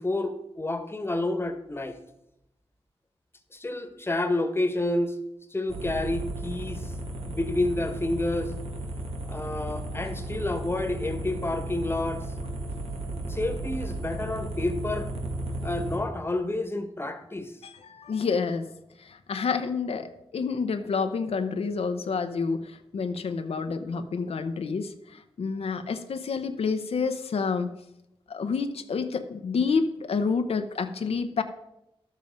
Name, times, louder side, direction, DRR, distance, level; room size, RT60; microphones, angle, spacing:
voice 1, 0.0-2.0 3.5-5.2 5.5-6.8 7.3-8.5 9.3-12.3 13.3-15.1 15.6-17.5, left 2 dB, 25° left, 7 dB, 1.2 m, -29 dB
sound 1, 5.7-16.0, right 1 dB, 80° right, 1.6 m, -34 dB
voice 2, 17.6-18.7 19.0-27.7 28.3-31.4, left 5 dB, 90° left, 7 dB, 0.7 m, -29 dB
11.5 x 7.4 x 5.2 m, 0.86 s
wide cardioid pair, 95°, 10 cm